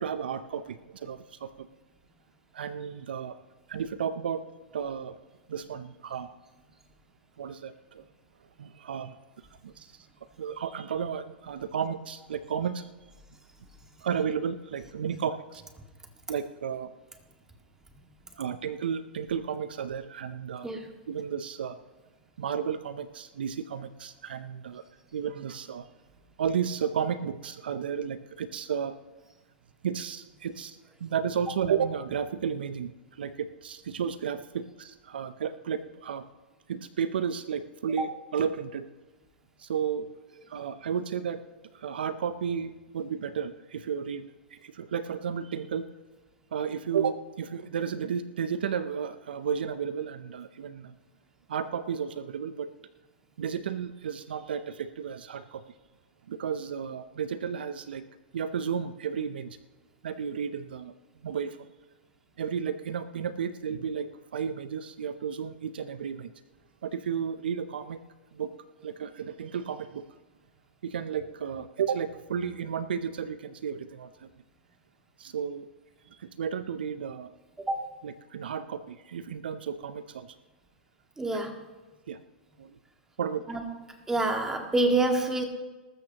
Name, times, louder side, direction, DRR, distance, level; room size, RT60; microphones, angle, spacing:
voice 1, 0.0-1.7 2.5-3.4 3.7-4.4 4.7-5.2 5.5-6.3 7.4-8.1 8.6-9.2 9.6-10.1 10.4-12.9 14.0-15.6 16.3-16.9 18.3-20.7 21.1-21.8 22.4-24.8 25.1-25.9 26.4-29.0 29.8-36.2 36.7-38.9 39.6-40.1 40.5-41.4 41.7-45.9 46.5-50.9 51.5-52.7 53.4-55.7 56.3-58.1 58.3-59.6 60.0-60.9 61.2-61.7 62.4-66.3 66.8-68.0 68.3-68.5 68.8-70.1 70.8-74.3 75.2-75.7 76.1-77.3 78.0-80.3 82.1-82.2 82.6-82.8 83.2-83.6, right 7 dB, 75° right, 13 dB, 0.7 m, -33 dB
voice 2, 81.2-81.5 83.5-83.6 84.1-85.4, right 2 dB, 10° right, 3 dB, 2.0 m, -26 dB
20.0 x 13.5 x 3.0 m, 1.2 s
hypercardioid pair, 115°, 5 cm